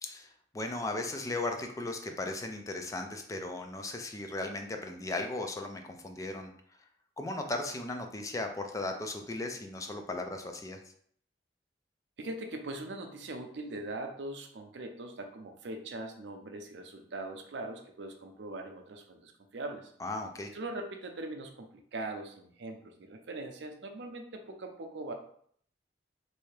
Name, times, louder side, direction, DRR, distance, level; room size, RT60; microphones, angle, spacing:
voice 1, 0.0-6.5 7.2-10.8 20.0-20.5, left 2 dB, 20° left, 4 dB, 0.4 m, -36 dB
voice 2, 12.2-19.9 20.5-25.1, right 2 dB, 75° right, 5 dB, 0.6 m, -41 dB
3.3 x 2.7 x 3.2 m, 0.62 s
head